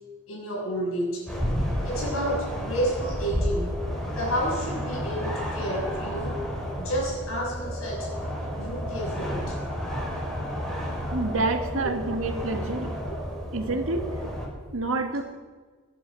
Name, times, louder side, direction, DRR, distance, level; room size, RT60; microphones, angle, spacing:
voice 1, 0.3-1.3 1.8-6.4 6.8-8.1 8.6-9.6 11.7-11.9, equal, 80° left, -1 dB, 6.3 m, -30 dB
sound 1, 1.3-14.5, equal, 5° left, 5.0 m, -31 dB
voice 2, 11.1-13.0 13.5-14.1 14.7-15.2, right 3 dB, 80° right, 5 dB, 1.8 m, -28 dB
24.0 x 10.5 x 5.7 m, 1.5 s
head